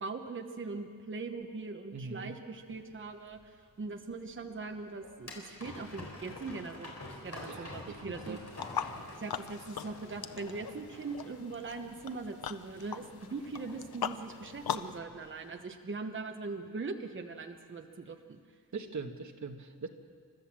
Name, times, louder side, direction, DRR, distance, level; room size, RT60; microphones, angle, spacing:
voice 1, 0.0-8.4 9.2-18.4, right 3 dB, 35° right, 5 dB, 1.0 m, -41 dB
voice 2, 1.9-2.4 7.4-8.4 18.7-19.9, right 4 dB, 55° right, 5 dB, 1.5 m, -42 dB
sound 1, 2.6-15.5, left 2 dB, 45° left, 4.4 m, -49 dB
sound 2, 8.5-15.0, left 8 dB, 85° left, 0.7 m, -40 dB
29.5 x 13.0 x 7.5 m, 2.1 s
wide cardioid pair, 165°, 35 cm